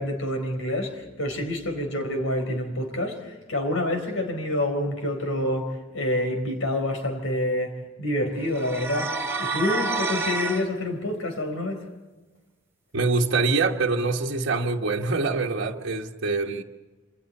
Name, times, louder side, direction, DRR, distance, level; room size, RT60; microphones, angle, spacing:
voice 1, 0.0-11.8, left 1 dB, 75° left, 4.3 m, -27 dB
sound 1, 8.5-10.6, right 3 dB, 10° right, 2.6 m, -28 dB
voice 2, 12.9-16.6, right 3 dB, 60° right, 1.4 m, -24 dB
27.0 x 26.5 x 4.3 m
head